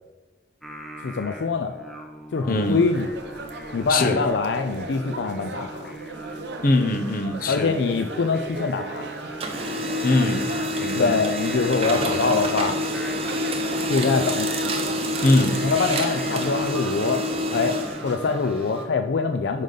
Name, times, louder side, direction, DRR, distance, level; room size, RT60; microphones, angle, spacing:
Singing, 0.6-18.9, right 1 dB, ahead, 0.7 m, -39 dB
voice 1, 1.0-1.8 2.3-3.1 3.7-5.9 7.5-9.1 11.0-13.0 13.9-14.5 15.6-17.2 17.5-17.8 18.0-19.6, left 4 dB, 75° left, 7 dB, 0.4 m, -24 dB
voice 2, 2.4-2.9 3.9-4.2 6.6-7.8 10.0-11.1 15.2-15.6, left 2 dB, 50° left, 7 dB, 0.8 m, -22 dB
sound 1, 2.6-18.4, right 2 dB, 80° right, 0.8 m, -38 dB
Printer, 7.7-9.0 9.3-18.8, equal, 35° right, 0.8 m, -28 dB
10.5 x 5.1 x 3.9 m, 1.2 s
head